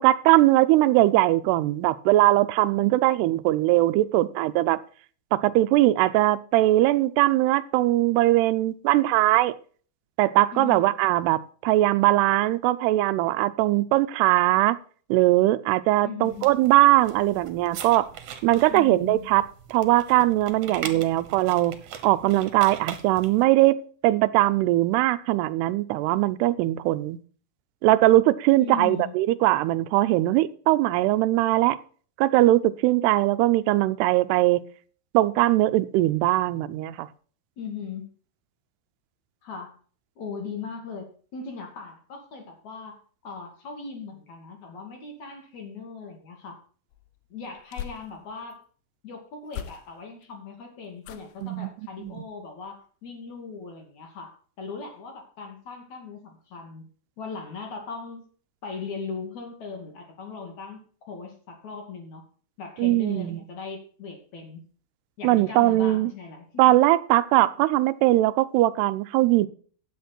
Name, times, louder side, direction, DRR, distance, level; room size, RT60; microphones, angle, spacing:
voice 1, 0.0-4.8 5.3-9.5 10.2-14.8 15.1-18.1 18.4-21.7 22.0-27.2 27.8-31.8 32.2-34.6 35.1-37.1 51.4-51.7 52.0-52.2 62.8-63.4 65.2-66.1 66.6-69.5, right 16 dB, 85° right, 14 dB, 2.7 m, -21 dB
voice 2, 10.5-10.9 16.0-16.5 18.7-19.2 28.6-29.2 37.6-38.0 39.4-39.7 40.2-43.0 43.2-46.6 47.3-48.6 49.0-56.8 57.2-58.3 58.6-60.8 61.1-62.2 62.6-64.6 65.2-66.6, left 5 dB, 50° left, 3 dB, 3.4 m, -38 dB
sound 1, 16.2-23.4, right 8 dB, 60° right, 2.4 m, -41 dB
sound 2, 46.9-48.6 49.5-50.2 51.0-51.5 52.0-52.3 52.7-52.8, left 10 dB, 80° left, 2.8 m, -41 dB
13.0 x 8.9 x 4.3 m, 0.43 s
omnidirectional pair, 4.6 m